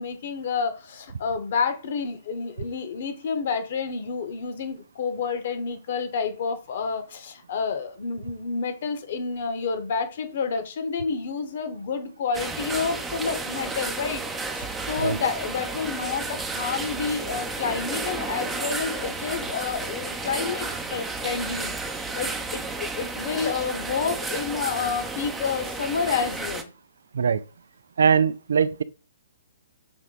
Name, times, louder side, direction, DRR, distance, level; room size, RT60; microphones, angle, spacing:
voice 1, 0.0-14.2 14.5-26.7, left 5 dB, 50° left, 1.3 m, -29 dB
sound 1, 12.3-26.6, right 3 dB, 10° right, 0.8 m, -32 dB
voice 2, 28.0-28.8, right 6 dB, 60° right, 0.4 m, -21 dB
5.8 x 3.8 x 4.9 m
figure-of-eight pair, 125°, 0 cm